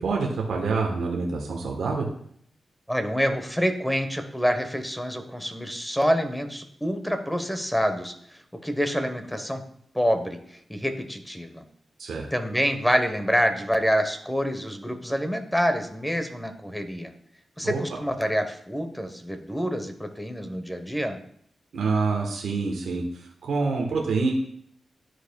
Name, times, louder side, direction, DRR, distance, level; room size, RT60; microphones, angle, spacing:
voice 1, 0.0-2.1 12.0-12.3 17.6-17.8 21.7-23.0 23.4-24.3, right 4 dB, 85° right, -1 dB, 1.1 m, -26 dB
voice 2, 2.9-9.6 9.9-11.6 12.3-17.1 17.6-21.2, equal, 5° left, 7 dB, 1.0 m, -27 dB
12.0 x 4.8 x 2.3 m, 0.67 s
cardioid pair, 65°, 0 cm